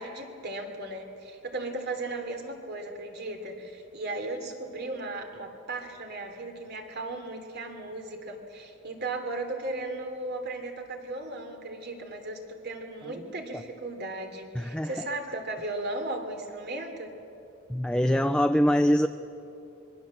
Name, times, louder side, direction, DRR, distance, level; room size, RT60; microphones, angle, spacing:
voice 1, 0.0-17.1, right 2 dB, 55° right, 4 dB, 3.2 m, -36 dB
voice 2, 14.5-14.9 17.7-19.1, equal, 5° left, 8 dB, 0.5 m, -23 dB
26.0 x 22.0 x 7.5 m, 2.9 s
head